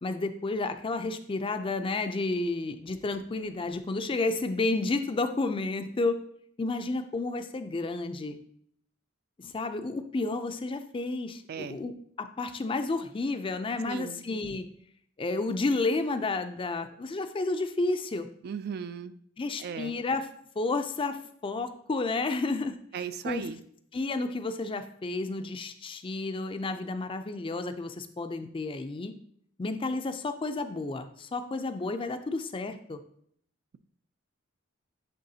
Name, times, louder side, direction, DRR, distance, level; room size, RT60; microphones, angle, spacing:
voice 1, 0.0-6.2 6.6-8.4 9.4-11.9 12.2-14.7 15.2-18.3 19.4-20.3 20.6-21.2 21.4-23.5 23.9-29.1 29.6-33.0, left 3 dB, 25° left, 9 dB, 0.4 m, -31 dB
voice 2, 11.5-11.8 13.8-14.2 18.4-19.1 19.6-20.0 22.9-23.6, right 7 dB, 50° right, 13 dB, 0.3 m, -36 dB
10.5 x 3.4 x 2.8 m, 0.64 s
head